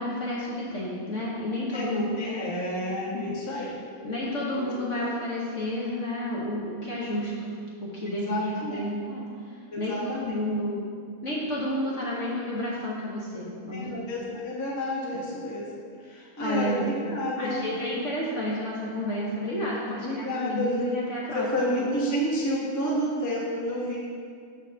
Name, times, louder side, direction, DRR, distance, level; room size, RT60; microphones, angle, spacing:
voice 1, 0.0-2.5 3.1-3.2 3.5-3.7 4.0-7.5 7.8-10.8 11.2-14.0 15.1-15.2 16.1-16.9 17.4-21.5, left 1 dB, 50° left, -5 dB, 0.9 m, -31 dB
voice 2, 1.7-3.8 4.5-5.1 8.3-8.8 9.7-10.3 13.7-15.7 16.0-17.6 19.9-20.9 21.3-24.0, equal, 20° left, -5 dB, 0.5 m, -30 dB
6.2 x 4.1 x 6.2 m, 2.2 s
omnidirectional pair, 2.3 m